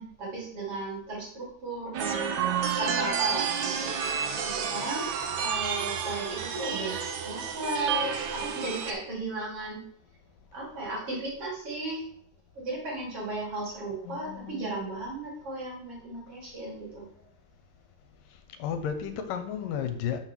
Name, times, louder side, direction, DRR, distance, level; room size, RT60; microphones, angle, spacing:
voice 1, 0.0-2.4 2.8-9.8 10.5-12.0 12.6-17.1, right 2 dB, 45° right, 3.8 m, -35 dB
sound 1, 1.9-8.9, right 7 dB, 70° right, 2.1 m, -30 dB
voice 2, 14.0-14.8 18.6-20.2, left 8 dB, 80° left, 2.4 m, -33 dB
6.4 x 6.2 x 5.9 m
omnidirectional pair, 3.9 m